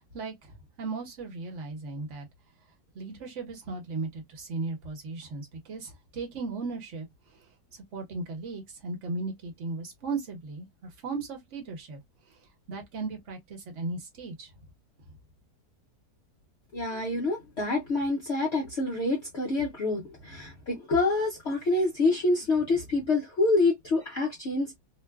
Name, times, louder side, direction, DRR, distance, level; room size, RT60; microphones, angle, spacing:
voice 1, 0.1-0.5 0.8-2.3 2.9-7.1 7.7-12.0 12.7-14.5 20.3-20.5, right 3 dB, 50° right, 1.2 m, -36 dB
voice 2, 16.7-24.8, left 3 dB, 60° left, 0.7 m, -27 dB
3.0 x 2.1 x 2.3 m
omnidirectional pair, 1.9 m